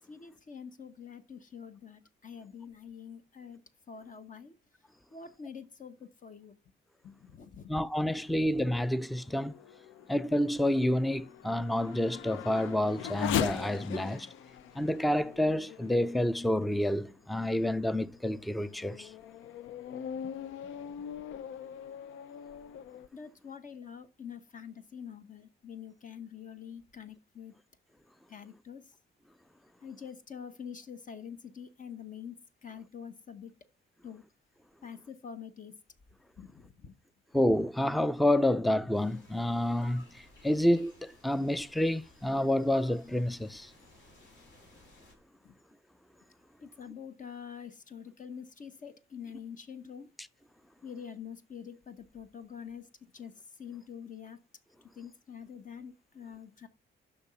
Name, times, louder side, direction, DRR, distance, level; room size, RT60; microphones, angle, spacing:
voice 1, 0.1-3.6 3.9-4.5 5.1-6.5 7.0-7.8 8.2-8.3 20.2-20.3 23.1-27.5 28.3-28.9 29.8-33.5 34.0-34.2 34.8-35.7 36.4-36.9 45.4-45.6 46.6-50.1 50.8-52.9 53.1-53.3 53.6-54.4 55.0-56.7, left 7 dB, 40° left, 0.9 m, -46 dB
voice 2, 7.7-9.5 10.1-14.3 14.8-19.1 37.3-40.1 40.4-43.7, left 1 dB, ahead, 0.4 m, -28 dB
Race car auto racing / Accelerating revving vroom, 9.0-17.0 17.6-17.7 18.3-23.1, left 9 dB, 90° left, 0.5 m, -40 dB
sound 1, 38.9-45.1, left 2 dB, 65° left, 3.4 m, -58 dB
6.8 x 5.9 x 5.6 m
cardioid pair, 90°, 20 cm